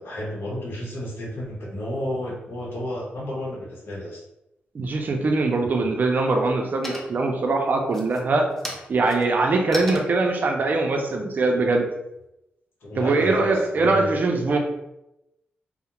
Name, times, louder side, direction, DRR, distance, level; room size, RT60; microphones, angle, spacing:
voice 1, 0.0-4.2 12.8-14.1, left 1 dB, 75° left, -3 dB, 0.8 m, -32 dB
voice 2, 4.7-8.5 8.9-11.9 13.0-14.6, right 3 dB, 50° right, 2 dB, 0.4 m, -22 dB
sound 1, 5.2-5.8 6.2-6.6 6.8-7.4 7.8-12.3, left 1 dB, 10° left, 0.5 m, -38 dB
2.4 x 2.0 x 2.9 m, 0.89 s
cardioid pair, 95°, 4 cm